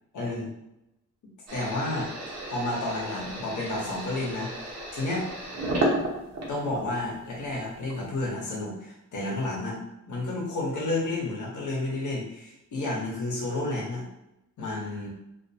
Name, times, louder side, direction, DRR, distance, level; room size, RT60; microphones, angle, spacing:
voice 1, 0.1-0.5 1.5-2.1 2.5-4.5 4.9-5.3 6.5-14.0 14.6-15.1, left 2 dB, 70° left, -3 dB, 1.0 m, -31 dB
sound 1, 1.5-7.0 7.4-8.2, right 1 dB, 55° right, 0.9 m, -32 dB
2.4 x 2.2 x 2.7 m, 0.87 s
cardioid pair, 105°, 31 cm